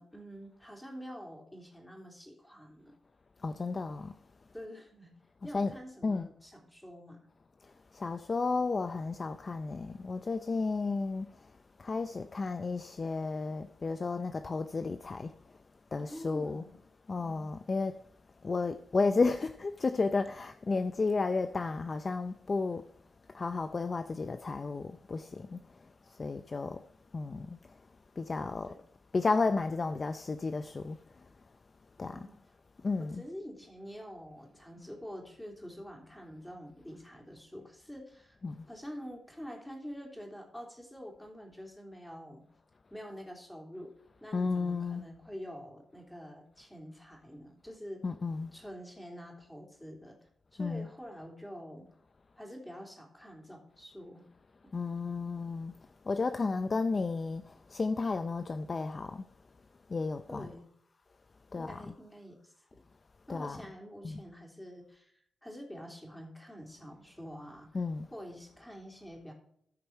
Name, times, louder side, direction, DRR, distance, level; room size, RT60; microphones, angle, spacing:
voice 1, 0.0-2.9 4.5-5.1 5.4-7.3 16.0-16.8 17.2-17.5 28.4-28.8 32.1-32.4 33.0-38.4 38.7-42.4 42.9-43.9 44.2-48.0 48.5-50.2 50.5-51.9 52.4-54.3 56.1-56.2 60.3-60.7 61.5-62.8 63.3-67.7 68.1-69.3, equal, 5° left, 3.3 m, -47 dB
voice 2, 3.4-4.1 5.4-6.3 7.6-11.5 11.8-15.3 15.9-16.7 17.1-18.0 18.4-22.9 23.3-26.8 27.1-27.6 28.2-28.8 29.1-31.0 32.0-32.3 32.8-33.2 38.4-38.7 44.3-45.0 48.0-48.5 50.6-50.9 54.7-55.7 56.1-59.3 59.9-60.5 61.5-62.0 63.3-63.7 64.0-64.2 67.7-68.1, left 4 dB, 35° left, 0.5 m, -33 dB
14.5 x 5.2 x 4.5 m
cardioid pair, 85°, 0 cm